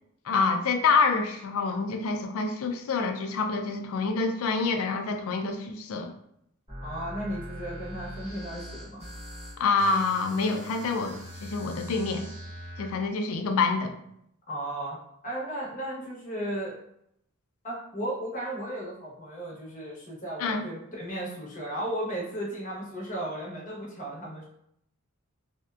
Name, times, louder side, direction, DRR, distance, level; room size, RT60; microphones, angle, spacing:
voice 1, 0.2-6.1 9.6-12.3 12.8-14.0 20.4-20.6, left 4 dB, 75° left, 5 dB, 0.3 m, -27 dB
sound 1, 6.7-12.9, equal, 30° right, 0.9 m, -41 dB
voice 2, 6.8-9.1 14.5-15.0 15.2-16.7 17.6-24.5, right 1 dB, 40° left, -5 dB, 0.9 m, -35 dB
2.6 x 2.1 x 2.3 m, 0.74 s
head